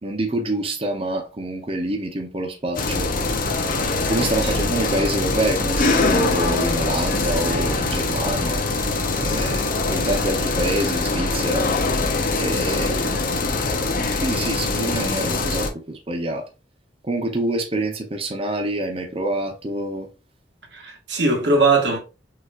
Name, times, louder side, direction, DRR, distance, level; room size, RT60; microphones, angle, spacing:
voice 1, 0.0-3.1 4.1-8.6 9.2-11.7 12.4-13.1 14.2-16.5 17.0-20.1, right 1 dB, 30° right, 0.8 m, -26 dB
sound 1, 2.8-15.7, left 3 dB, 50° left, 0.8 m, -23 dB
voice 2, 20.7-22.0, right 3 dB, 70° right, 1.4 m, -20 dB
6.2 x 3.0 x 2.5 m
head